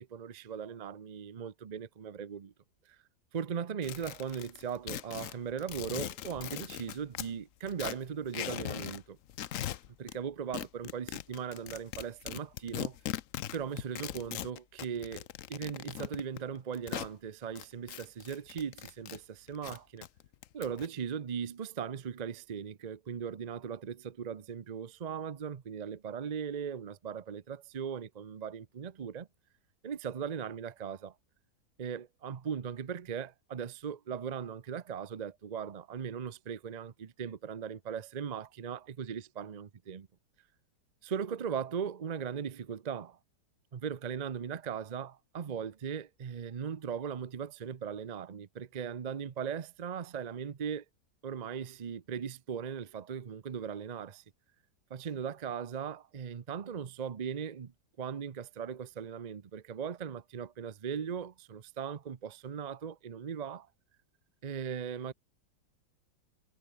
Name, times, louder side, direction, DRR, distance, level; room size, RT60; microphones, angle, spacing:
voice 1, 0.0-2.5 2.9-3.0 3.3-9.2 10.0-13.0 13.5-20.1 20.5-29.3 29.8-31.1 31.8-40.0 41.0-43.2 43.7-50.8 51.2-54.2 54.9-57.7 58.0-63.7 64.4-65.1, right 7 dB, 55° right, 0.4 m, -38 dB
sound 1, 3.8-7.3 7.7-9.0 9.3-10.2 10.5-17.1 17.6-19.2 19.5-20.9, left 12 dB, 60° left, 0.9 m, -40 dB
omnidirectional pair, 1.8 m